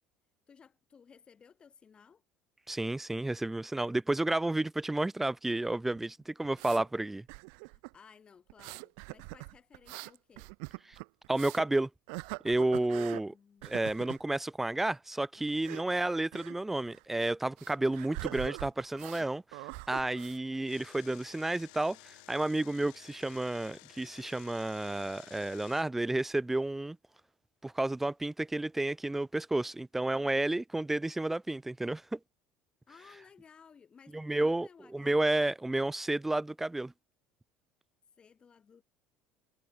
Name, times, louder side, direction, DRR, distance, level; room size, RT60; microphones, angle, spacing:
voice 1, 0.5-2.2 7.6-10.5 12.9-14.0 15.4-15.7 30.1-30.4 32.9-35.2 38.2-38.8, left 6 dB, 25° left, 2.4 m, -58 dB
voice 2, 2.7-7.3 10.9-11.0 11.3-11.9 12.4-13.3 13.6-27.0 27.6-32.2 34.1-36.9, right 2 dB, 5° right, 0.5 m, -31 dB
sound 1, 6.0-6.8 7.3-7.9 8.5-11.7 12.1-13.2 13.6-14.2 15.5-15.8 16.3-16.6 16.9-17.0 17.6-19.2 19.5-20.4, right 40 dB or more, 80° right, 0.5 m, -43 dB
Engine, 20.7-25.8, left 28 dB, 85° left, 6.1 m, -54 dB
cardioid pair, 140°, 4 cm